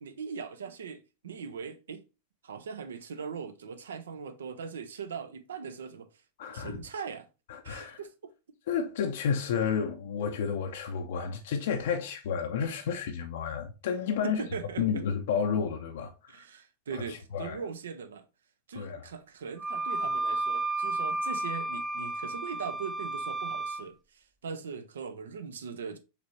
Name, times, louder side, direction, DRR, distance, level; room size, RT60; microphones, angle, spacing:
voice 1, 0.0-2.0 2.4-6.1 6.5-7.3 7.6-8.3 14.2-15.0 16.3-18.2 18.7-26.0, right 6 dB, 65° right, 0.6 m, -40 dB
voice 2, 6.4-6.8 7.5-8.0 8.7-14.4 14.8-16.4 16.9-17.6 18.7-19.0, left 7 dB, 55° left, 0.5 m, -31 dB
Wind instrument woodwind instrument, 19.6-23.9, right 2 dB, 15° right, 0.4 m, -32 dB
5.0 x 3.3 x 3.1 m
figure-of-eight pair, 90°, 0 cm